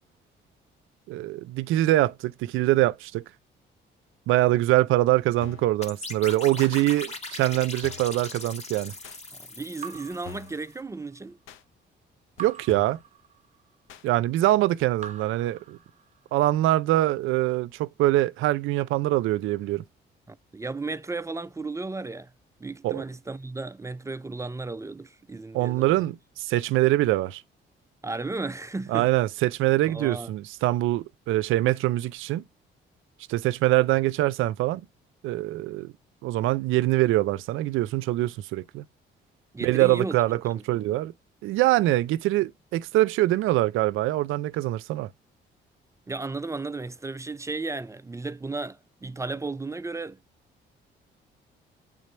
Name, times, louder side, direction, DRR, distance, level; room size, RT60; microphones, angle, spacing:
voice 1, 1.1-3.2 4.3-8.9 12.4-13.0 14.0-15.8 16.3-19.8 22.8-23.0 25.5-27.4 28.9-32.4 33.3-34.9 35.2-35.9 36.2-38.8 39.6-41.1 41.4-45.1, right 16 dB, 90° right, 0.5 m, -24 dB
sound 1, 5.4-5.7 6.6-6.8 7.5-7.6 7.8-8.2 9.0-9.2 9.9-10.0 10.2-10.6 11.5-11.6 12.4-12.5 12.7-13.0 13.9-14.1 14.8-14.9, left 11 dB, 80° left, 0.7 m, -45 dB
sound 2, 5.8-10.6, left 2 dB, 35° left, 1.5 m, -39 dB
voice 2, 9.3-11.4 20.3-22.3 22.6-26.0 28.0-29.1 29.9-30.3 39.5-40.2 40.5-41.0 46.1-50.2, right 3 dB, 15° right, 0.3 m, -34 dB
Raindrop / Drip, 9.8-11.2 12.4-13.8 15.0-16.4, right 7 dB, 40° right, 0.8 m, -45 dB
8.2 x 3.7 x 3.2 m
cardioid pair, 90°, 20 cm